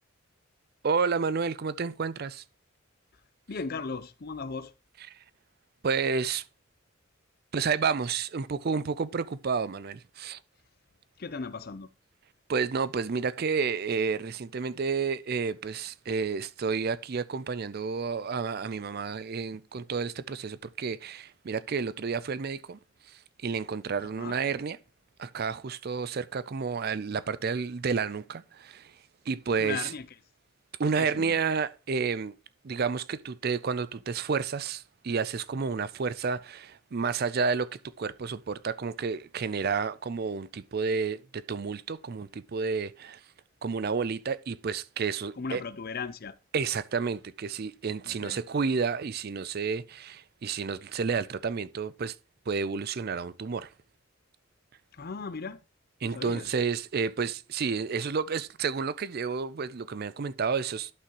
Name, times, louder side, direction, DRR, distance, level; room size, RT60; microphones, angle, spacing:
voice 1, 0.8-2.4 5.1-5.2 5.8-6.4 7.5-10.4 12.5-22.8 23.4-24.8 25.2-28.9 29.3-29.9 30.8-32.3 32.6-37.7 38.0-43.2 43.6-45.6 46.5-52.2 52.5-53.7 56.0-60.9, right 5 dB, 45° right, 0.4 m, -30 dB
voice 2, 3.5-4.7 11.2-11.9 24.0-24.4 29.6-30.1 31.0-31.3 45.4-46.4 48.0-48.4 54.9-55.6 56.0-56.5, left 4 dB, 45° left, 0.5 m, -37 dB
11.5 x 5.9 x 3.0 m
head